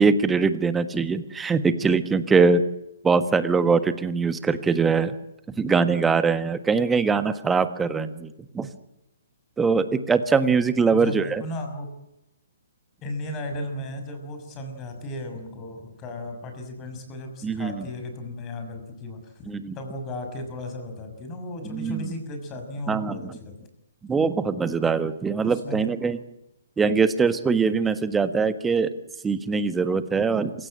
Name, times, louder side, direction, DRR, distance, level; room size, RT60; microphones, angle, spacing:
voice 1, 0.0-2.6 3.0-5.1 5.6-8.7 9.6-11.4 17.4-17.8 19.5-19.7 21.7-22.1 22.9-23.3 24.1-26.2 26.8-28.9 29.2-30.5, right 5 dB, 10° right, 12 dB, 1.5 m, -22 dB
voice 2, 10.9-11.9 13.0-19.5 19.7-23.6 25.4-25.9, left 1 dB, 25° left, 5 dB, 6.3 m, -35 dB
27.5 x 16.5 x 8.9 m, 0.88 s
figure-of-eight pair, 130°, 0 cm